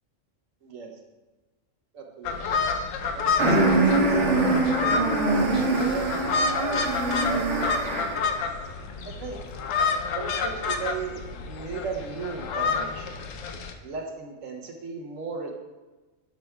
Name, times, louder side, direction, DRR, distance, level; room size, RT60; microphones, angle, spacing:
voice 1, 0.6-0.9 1.9-2.6 3.1-4.6 5.3-6.8 7.3-8.4 9.0-9.4 10.1-13.1 13.8-15.5, right 5 dB, 80° right, 1 dB, 1.2 m, -36 dB
sound 1, 2.2-13.7, left 4 dB, 80° left, 1.0 m, -29 dB
sound 2, 3.4-8.3, right 2 dB, 65° right, 1.3 m, -23 dB
9.1 x 5.9 x 2.3 m, 1.2 s
omnidirectional pair, 1.3 m